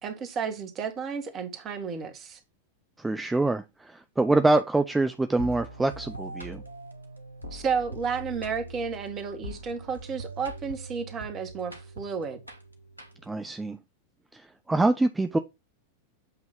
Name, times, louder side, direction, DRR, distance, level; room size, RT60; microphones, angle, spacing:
voice 1, 0.0-2.4 4.3-4.5 7.5-12.4, right 6 dB, 30° right, 1.6 m, -32 dB
voice 2, 3.0-6.6 13.3-13.8 14.3-15.4, right 2 dB, 10° right, 0.5 m, -25 dB
sound 1, 5.4-13.5, right 1 dB, 85° right, 1.4 m, -42 dB
8.1 x 3.0 x 5.4 m
figure-of-eight pair, 90°, 0 cm